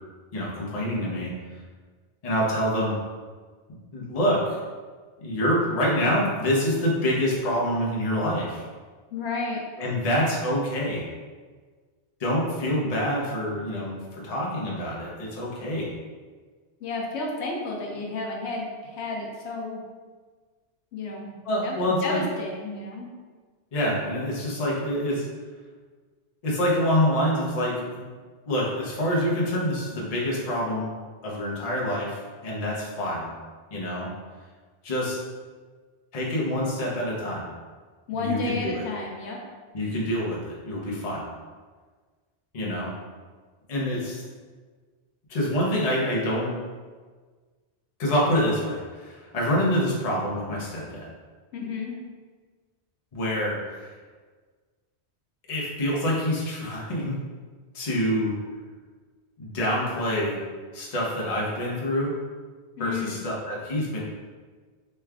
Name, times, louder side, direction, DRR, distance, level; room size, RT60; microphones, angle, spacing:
voice 1, 0.3-1.3 2.2-3.0 3.9-4.6 5.2-8.6 9.8-11.0 12.2-15.9 21.4-22.2 23.7-25.3 26.4-28.1 28.5-30.9 31.2-33.3 33.7-34.1 34.8-35.2 36.1-37.5 38.1-38.8 39.7-41.3 42.5-42.9 43.7-44.2 45.3-46.5 48.0-51.1 53.1-53.9 55.5-57.1 57.7-58.3 59.4-60.4 60.7-62.1 62.8-64.0, equal, 40° left, -4 dB, 0.7 m, -26 dB
voice 2, 9.1-9.6 16.8-19.8 20.9-21.4 21.6-21.8 22.0-23.1 38.1-39.4 51.5-52.0 62.8-63.2, left 3 dB, 85° left, -1 dB, 0.9 m, -31 dB
3.2 x 2.3 x 3.4 m, 1.5 s
omnidirectional pair, 1.1 m